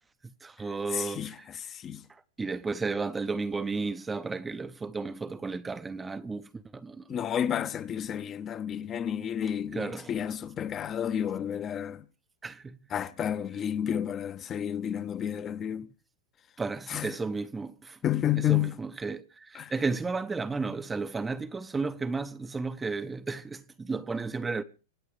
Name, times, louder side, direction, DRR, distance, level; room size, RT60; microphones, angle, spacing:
voice 1, 0.2-1.3 2.1-7.2 9.7-10.1 12.4-12.8 16.6-18.0 18.5-24.6, right 4 dB, 10° right, 0.6 m, -33 dB
voice 2, 0.9-2.0 7.1-12.0 12.9-15.9 16.9-17.1 18.0-18.8 19.5-19.7, left 10 dB, 25° left, 0.7 m, -31 dB
25.5 x 8.7 x 4.8 m
supercardioid pair, 145°, 0 cm